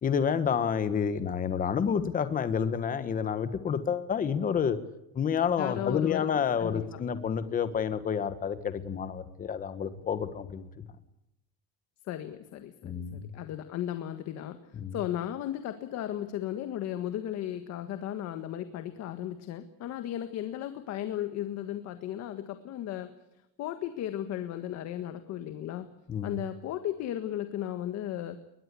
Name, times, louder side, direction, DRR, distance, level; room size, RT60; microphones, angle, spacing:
voice 1, 0.0-4.8 5.1-10.9 12.8-13.3 14.7-14.9 26.1-26.4, left 7 dB, 25° left, 11 dB, 1.5 m, -29 dB
voice 2, 5.6-6.3 6.6-7.0 12.0-23.1 23.6-25.9 26.2-28.4, left 11 dB, 45° left, 9 dB, 1.6 m, -35 dB
21.5 x 21.0 x 8.4 m, 0.86 s
cardioid pair, 175°, 36 cm